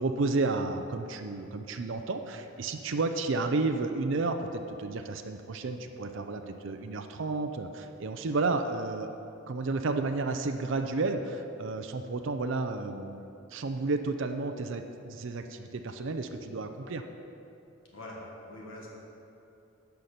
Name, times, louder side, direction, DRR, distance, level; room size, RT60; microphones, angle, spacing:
voice 1, 0.0-9.1 9.5-13.2 13.5-17.0, right 3 dB, 60° right, 6 dB, 0.5 m, -32 dB
voice 2, 17.9-18.9, left 1 dB, 65° left, -3 dB, 1.7 m, -44 dB
10.5 x 5.7 x 6.7 m, 2.8 s
head